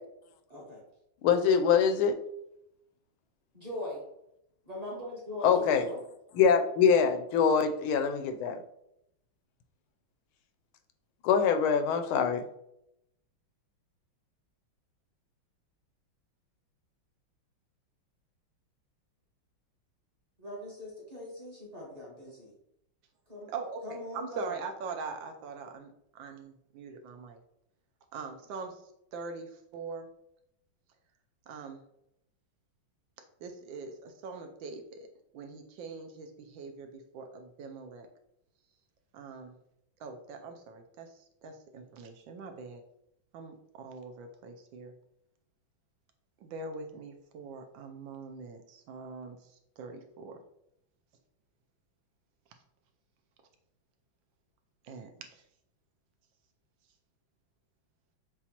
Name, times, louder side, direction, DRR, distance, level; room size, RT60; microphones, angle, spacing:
voice 1, 0.5-0.8 3.5-4.0 4.6-6.0 20.4-22.5 23.3-23.5 23.8-24.6, left 1 dB, 25° right, -5 dB, 0.9 m, -40 dB
voice 2, 1.2-2.1 5.4-5.8 6.4-8.6 11.2-12.4, left 6 dB, 85° left, 7 dB, 1.4 m, -24 dB
voice 3, 24.1-27.4 28.1-28.8 29.1-30.1 31.5-31.8 33.4-35.1 35.3-38.1 39.1-39.5 40.0-42.8 43.3-44.9 46.4-49.4 49.8-50.4 54.8-55.4, right 4 dB, 75° right, 5 dB, 1.2 m, -42 dB
6.9 x 2.4 x 2.8 m, 0.79 s
omnidirectional pair, 2.2 m